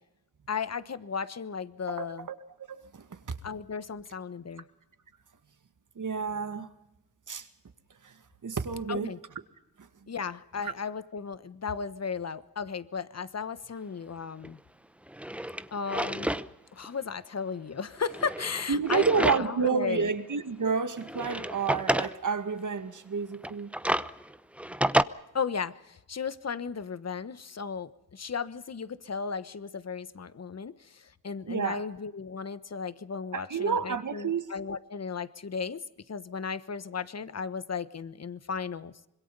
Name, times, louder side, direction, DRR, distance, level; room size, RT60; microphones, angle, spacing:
voice 1, 0.5-2.3 3.4-4.6 8.9-9.2 10.1-14.6 15.7-16.4 16.7-20.1 25.3-38.9, left 5 dB, 40° left, 1.2 m, -35 dB
voice 2, 1.9-2.4 2.7-3.2 6.0-6.7 7.3-7.5 8.0-8.1 8.4-9.1 9.8-9.9 10.6-10.7 18.7-23.7 31.5-31.8 33.3-34.5, right 5 dB, 55° right, 2.1 m, -30 dB
Drawer open or close, 14.4-14.5 15.1-16.5 16.8-16.9 18.0-19.7 20.1-20.2 21.0-22.1 23.3-25.0, right 1 dB, 5° right, 0.8 m, -30 dB
26.0 x 22.0 x 5.5 m
cardioid pair, 60°, 38 cm